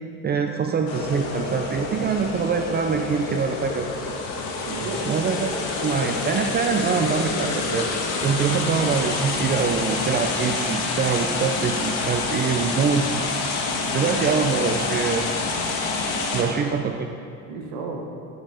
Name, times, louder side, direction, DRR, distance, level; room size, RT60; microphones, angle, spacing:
voice 1, 0.2-3.9 5.1-7.9 8.2-13.2 13.9-15.3 16.3-16.9, right 6 dB, 25° right, 4 dB, 0.5 m, -24 dB
sound 1, 0.9-16.4, left 3 dB, 85° left, 1.6 m, -27 dB
voice 2, 4.7-5.0 14.1-14.7 16.3-16.7 17.5-18.0, right 3 dB, 75° right, 0 dB, 1.8 m, -33 dB
11.0 x 7.1 x 4.5 m, 2.4 s
supercardioid pair, 105°, 36 cm